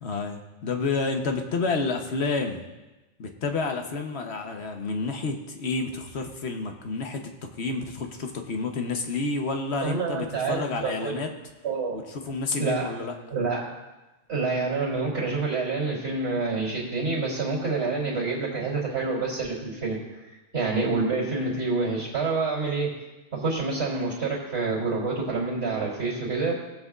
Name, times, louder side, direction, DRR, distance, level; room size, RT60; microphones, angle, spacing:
voice 1, 0.0-2.6 3.2-11.3 11.9-13.1, left 3 dB, 60° left, 4 dB, 1.2 m, -30 dB
voice 2, 9.8-11.1 11.6-12.0 12.6-12.9 13.3-13.6 14.3-22.9 23.3-26.5, right 3 dB, 60° right, -7 dB, 3.2 m, -27 dB
19.5 x 7.8 x 2.4 m, 1.1 s
omnidirectional pair, 1.3 m